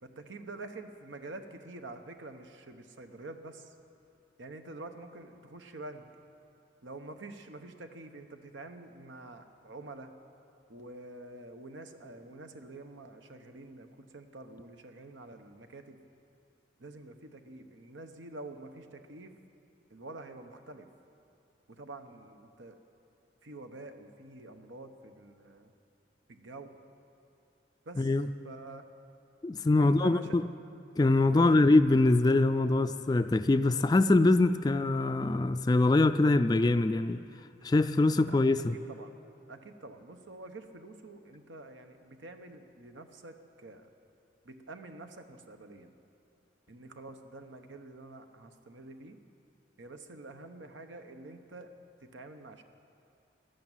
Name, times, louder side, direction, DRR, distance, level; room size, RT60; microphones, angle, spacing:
voice 1, 0.0-3.7 4.4-6.1 6.8-10.1 10.7-16.0 16.8-19.3 19.9-20.9 21.7-22.8 23.4-25.7 26.3-26.7 27.8-28.1 28.4-28.9 29.8-30.5 31.3-31.5 38.2-38.4 38.7-39.1 39.5-43.9 44.4-45.9 46.7-49.2 49.8-51.7 52.0-52.6, right 2 dB, 90° right, 7 dB, 1.0 m, -47 dB
voice 2, 29.4-30.4 31.0-37.2 37.6-38.7, left 2 dB, 20° left, 9 dB, 0.3 m, -24 dB
14.5 x 11.0 x 9.0 m, 2.6 s
head